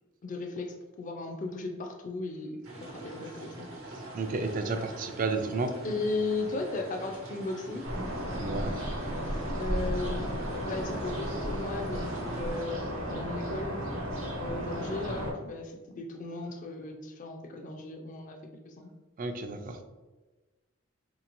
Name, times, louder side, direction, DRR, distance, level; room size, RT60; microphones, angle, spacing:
voice 1, 0.2-3.7 5.8-7.9 9.2-10.3 10.6-13.8 14.4-18.4 18.6-18.9, left 3 dB, 35° left, 3 dB, 0.3 m, -36 dB
sound 1, 2.6-12.6, right 1 dB, 90° right, 1.0 m, -44 dB
voice 2, 3.9-5.7 8.3-8.8 19.2-19.8, right 3 dB, 40° right, 7 dB, 0.3 m, -32 dB
sound 2, 7.8-15.3, equal, 65° right, 1.1 m, -34 dB
3.8 x 2.9 x 2.5 m, 1.2 s
head